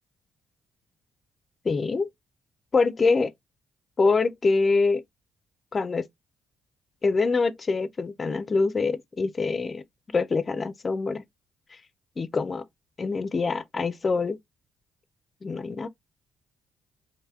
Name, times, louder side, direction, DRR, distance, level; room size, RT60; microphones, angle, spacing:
voice 1, 1.6-2.1 2.7-3.3 4.0-5.0 5.7-6.1 7.0-9.8 10.1-11.2 12.2-12.6 13.0-14.4 15.4-15.9, left 4 dB, 35° left, 0.4 m, -24 dB
3.4 x 2.6 x 2.3 m
cardioid pair, 90°, 0 cm